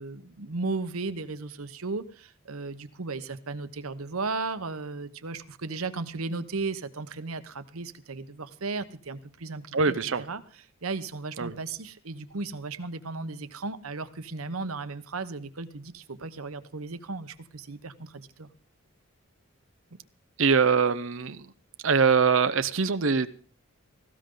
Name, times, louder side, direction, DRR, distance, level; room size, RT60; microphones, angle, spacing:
voice 1, 0.0-10.0 10.3-18.5, right 3 dB, 90° right, 1.1 m, -35 dB
voice 2, 9.7-10.2 11.4-11.5 20.4-21.5 21.8-23.3, right 5 dB, 65° right, 0.7 m, -23 dB
18.5 x 15.5 x 3.9 m
head